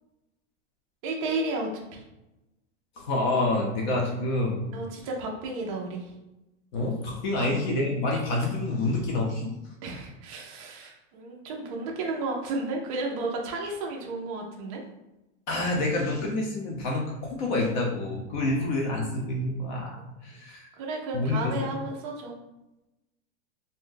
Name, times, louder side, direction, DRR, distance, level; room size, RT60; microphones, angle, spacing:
voice 1, 1.0-2.0 4.7-6.1 7.4-7.5 9.8-14.8 20.8-22.4, right 2 dB, 30° right, -1 dB, 0.4 m, -33 dB
voice 2, 3.0-4.6 6.7-9.5 15.5-20.0 20.2-20.6 21.1-21.4, left 2 dB, 40° left, -1 dB, 0.5 m, -27 dB
2.6 x 2.1 x 3.7 m, 0.97 s
supercardioid pair, 175°, 37 cm